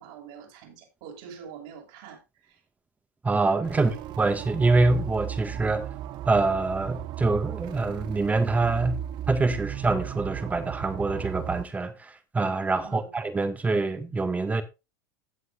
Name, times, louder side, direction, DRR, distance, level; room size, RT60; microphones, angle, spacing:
voice 1, 0.0-2.6 3.7-4.0 12.8-13.1, right 7 dB, 65° right, 6.0 m, -45 dB
voice 2, 3.2-3.9 4.2-5.9 6.3-14.6, right 3 dB, 15° right, 1.9 m, -25 dB
sound 1, 3.6-11.6, right 12 dB, 45° right, 0.8 m, -36 dB
16.5 x 8.0 x 2.6 m
supercardioid pair, 115°, 11 cm